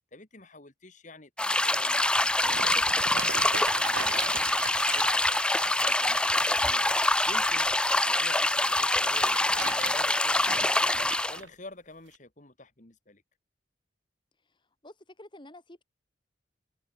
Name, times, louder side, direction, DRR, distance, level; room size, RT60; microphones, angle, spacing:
voice 1, 0.1-1.3 1.6-2.9 3.9-4.5 4.9-7.7 8.1-10.9 11.3-13.2, left 2 dB, 40° left, 2.4 m, -48 dB
sound 1, 1.4-11.4, left 2 dB, 5° left, 0.4 m, -25 dB
sound 2, 2.0-8.1 9.0-11.5 12.1-12.2, right 6 dB, 80° right, 0.9 m, -40 dB
voice 2, 14.8-15.8, left 1 dB, 25° left, 2.0 m, -49 dB
head